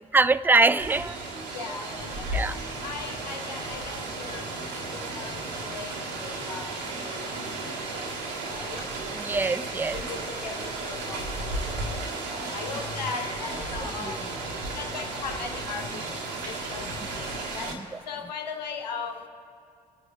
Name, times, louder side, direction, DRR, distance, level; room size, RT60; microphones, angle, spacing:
voice 1, 0.1-1.5 2.3-2.6 9.1-10.0 14.0-14.2 17.7-17.8, right 3 dB, 10° right, 16 dB, 0.4 m, -24 dB
Rain, 0.8-17.7, right 2 dB, 85° right, 1.5 m, -34 dB
voice 2, 1.5-2.3 2.8-6.7 7.0-8.8 9.9-12.0 12.3-14.2 14.7-16.0 16.4-16.8 17.2-17.7 18.1-19.3, left 5 dB, 85° left, 4 dB, 0.9 m, -39 dB
27.5 x 9.5 x 2.7 m, 2.7 s
hypercardioid pair, 50°, 21 cm